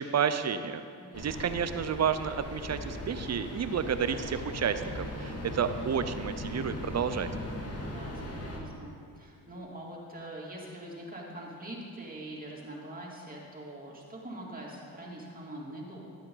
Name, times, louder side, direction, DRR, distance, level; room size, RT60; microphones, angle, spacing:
voice 1, 0.0-0.8 1.1-7.3, right 7 dB, 40° right, 10 dB, 0.7 m, -30 dB
voice 2, 1.0-1.6 7.8-16.2, right 1 dB, 20° right, -4 dB, 2.9 m, -44 dB
sound 1, 1.1-8.6, left 1 dB, 35° left, 2.2 m, -39 dB
12.0 x 8.6 x 4.0 m, 2.5 s
supercardioid pair, 65°, 41 cm